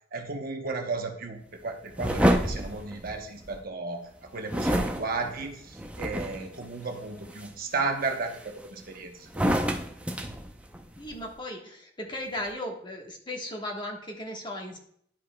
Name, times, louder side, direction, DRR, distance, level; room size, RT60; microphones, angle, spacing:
voice 1, 0.1-9.3, right 3 dB, 50° right, 4 dB, 0.9 m, -34 dB
sound 1, 2.0-3.6 4.5-6.6 7.1-7.5 8.0-8.8 9.3-11.2, equal, 5° right, 0.6 m, -28 dB
voice 2, 11.0-14.8, left 1 dB, 25° left, 1 dB, 1.2 m, -36 dB
11.5 x 5.3 x 2.2 m, 0.68 s
head